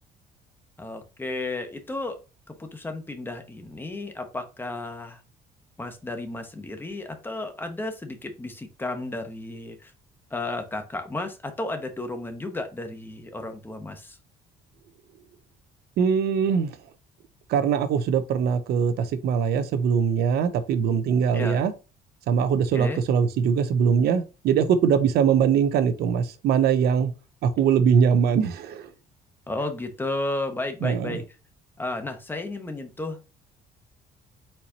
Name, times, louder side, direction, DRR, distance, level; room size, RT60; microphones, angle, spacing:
voice 1, 0.8-2.2 2.5-5.2 5.8-9.9 10.3-14.2 21.3-21.6 22.7-23.0 29.5-31.2 31.8-33.3, left 2 dB, 10° left, 1.1 m, -33 dB
voice 2, 16.0-16.7 17.5-21.7 22.3-27.1 27.4-28.9 30.8-31.2, right 7 dB, 70° right, 0.8 m, -22 dB
4.5 x 4.1 x 2.9 m
cardioid pair, 110°, 17 cm